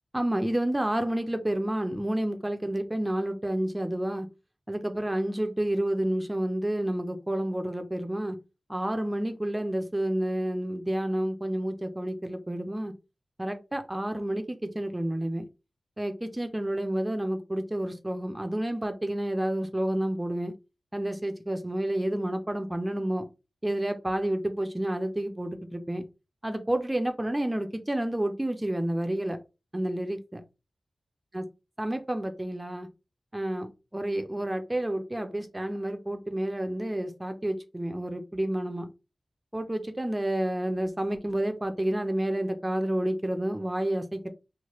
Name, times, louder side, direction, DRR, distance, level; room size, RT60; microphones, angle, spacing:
voice 1, 0.1-4.3 4.7-8.4 8.7-12.9 13.4-15.5 16.0-20.5 20.9-23.3 23.6-26.0 26.4-29.4 29.7-30.4 31.3-31.5 31.8-32.9 33.3-38.9 39.5-44.3, right 1 dB, 15° right, 6 dB, 0.4 m, -30 dB
3.0 x 2.1 x 2.9 m, 0.28 s
wide cardioid pair, 100°, 0 cm